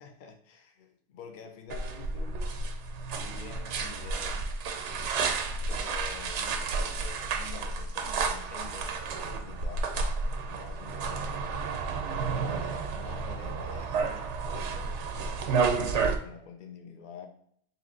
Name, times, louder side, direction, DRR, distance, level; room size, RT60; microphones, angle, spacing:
voice 1, 0.0-2.4 3.2-4.6 5.7-8.9 9.2-9.8 10.4-11.4 12.3-15.0 15.3-17.3, left 6 dB, 55° left, 4 dB, 0.7 m, -47 dB
sound 1, 1.7-16.2, right 4 dB, 80° right, 0.9 m, -31 dB
3.1 x 2.9 x 3.7 m, 0.67 s
omnidirectional pair, 1.2 m